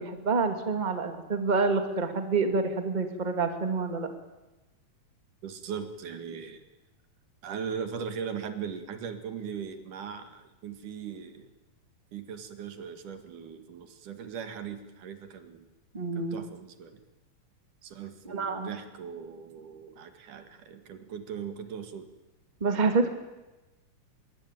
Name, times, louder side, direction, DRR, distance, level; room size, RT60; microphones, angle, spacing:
voice 1, 0.0-4.1 15.9-16.4 18.3-18.7 22.6-23.1, right 4 dB, 15° right, 6 dB, 2.0 m, -27 dB
voice 2, 5.4-6.6 7.4-11.5 12.1-15.7 16.2-17.0 17.8-22.1, right 7 dB, 75° right, 8 dB, 3.4 m, -39 dB
25.0 x 21.5 x 9.2 m, 1.1 s
omnidirectional pair, 3.7 m